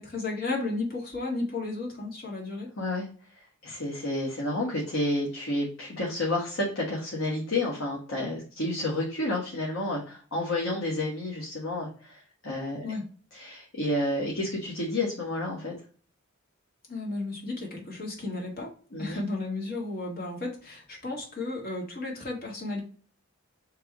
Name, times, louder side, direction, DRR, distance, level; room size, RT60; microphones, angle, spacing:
voice 1, 0.0-2.7 12.8-13.1 16.9-18.7 19.0-22.8, left 2 dB, 50° left, -2 dB, 1.7 m, -33 dB
voice 2, 2.8-3.1 3.6-12.8 13.3-15.7 18.9-19.2, left 1 dB, 80° left, -2 dB, 1.3 m, -30 dB
3.4 x 3.2 x 4.7 m, 0.41 s
head